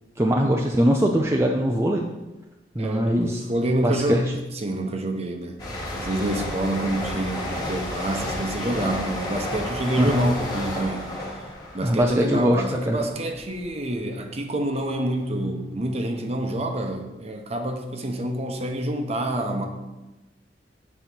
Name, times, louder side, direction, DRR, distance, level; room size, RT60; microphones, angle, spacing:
voice 1, 0.2-2.1 2.8-3.4 3.8-4.2 10.0-10.2 11.8-13.0, equal, 15° right, 1 dB, 0.5 m, -22 dB
voice 2, 2.8-4.3 4.5-5.6 5.9-11.1 11.7-19.7, right 1 dB, 35° right, 4 dB, 0.9 m, -27 dB
sound 1, 5.6-13.1 13.4-13.7, left 1 dB, 20° left, 1.8 m, -31 dB
8.3 x 4.2 x 6.0 m, 1.0 s
head